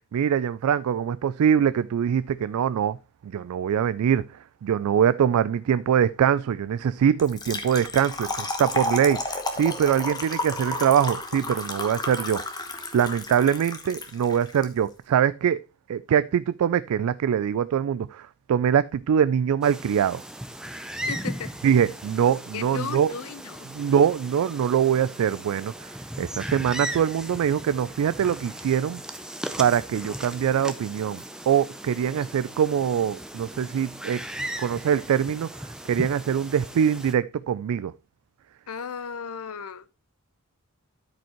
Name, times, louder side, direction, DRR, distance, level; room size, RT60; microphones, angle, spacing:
voice 1, 0.1-3.0 3.2-4.3 4.6-12.4 12.9-15.6 15.9-20.2 21.6-23.1 23.7-25.9 26.2-29.0 29.6-34.2 34.6-37.9, right 8 dB, 85° right, 0.3 m, -23 dB
Trickle dribble / Fill (with liquid), 7.2-14.7, left 2 dB, 20° left, 1.0 m, -32 dB
sound 1, 19.6-37.1, right 1 dB, 5° right, 0.5 m, -37 dB
voice 2, 21.1-21.5 22.5-23.7 38.7-39.8, left 6 dB, 85° left, 0.7 m, -35 dB
12.5 x 5.2 x 3.0 m
head